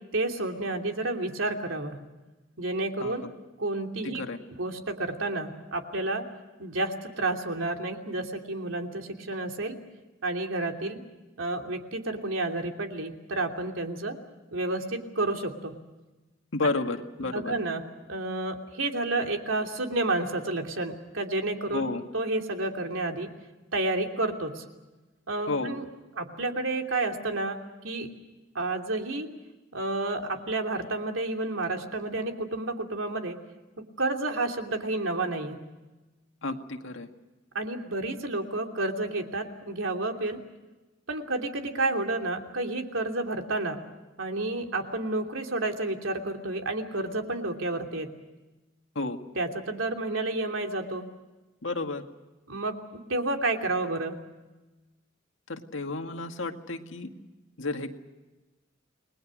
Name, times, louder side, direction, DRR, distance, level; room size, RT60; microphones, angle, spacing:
voice 1, 0.1-2.0 2.6-3.3 3.6-4.3 4.6-6.2 6.6-9.8 10.2-11.0 11.4-14.2 14.5-15.8 17.2-21.9 22.1-23.3 23.7-24.6 25.3-25.8 26.2-27.6 27.8-28.1 28.5-29.3 29.7-33.4 33.8-35.6 37.5-40.4 41.1-43.8 44.2-48.1 49.4-51.1 52.5-52.8 53.1-54.2, right 2 dB, 90° right, 3 dB, 3.0 m, -30 dB
voice 2, 4.0-4.4 16.5-17.5 21.7-22.0 25.5-25.7 36.4-37.1 49.0-49.2 51.6-52.0 55.5-57.1 57.6-57.9, left 2 dB, 70° left, 5 dB, 2.1 m, -31 dB
29.5 x 21.0 x 6.4 m, 1.1 s
head